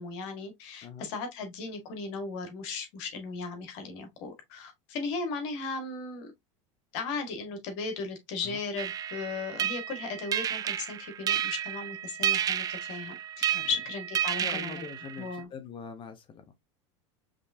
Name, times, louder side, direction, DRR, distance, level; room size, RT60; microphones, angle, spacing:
voice 1, 0.0-6.3 6.9-14.9 15.2-15.5, left 4 dB, 65° left, 1.8 m, -36 dB
sound 1, 8.8-15.4, right 9 dB, 25° right, 0.4 m, -31 dB
voice 2, 14.4-16.4, left 6 dB, 30° left, 0.8 m, -43 dB
5.2 x 3.3 x 2.7 m
supercardioid pair, 115°, 16 cm